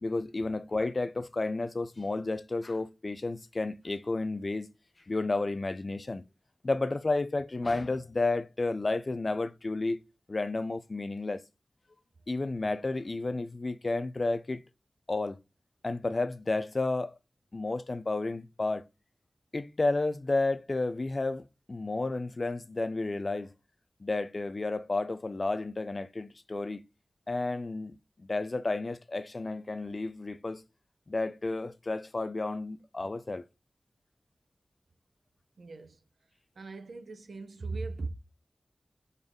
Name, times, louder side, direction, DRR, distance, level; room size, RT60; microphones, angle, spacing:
voice 1, 0.0-4.7 5.1-6.2 6.6-10.0 10.3-11.4 12.3-14.6 15.1-15.4 15.8-17.1 17.5-18.8 19.5-23.5 24.0-26.8 27.3-30.6 31.1-33.4, left 2 dB, 50° left, 0.5 m, -31 dB
voice 2, 35.6-36.0 36.6-38.1, right 3 dB, 85° right, 0.9 m, -38 dB
6.9 x 4.0 x 3.6 m
wide cardioid pair, 60°, 0 cm